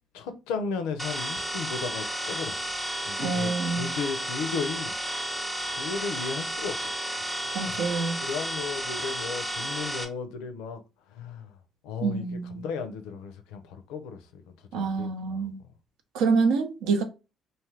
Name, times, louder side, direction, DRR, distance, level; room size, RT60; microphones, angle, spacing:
voice 1, 0.1-2.7 3.0-3.5 3.8-4.9 5.8-7.8 8.2-10.8 11.1-11.5 11.8-15.5, left 5 dB, 75° left, 0.4 m, -35 dB
sound 1, 1.0-10.0, right 1 dB, 20° right, 0.7 m, -32 dB
voice 2, 3.2-3.9 7.5-8.2 12.0-12.7 14.7-15.6 16.1-17.0, right 4 dB, 75° right, 0.6 m, -27 dB
2.6 x 2.4 x 3.2 m
hypercardioid pair, 55°, 0 cm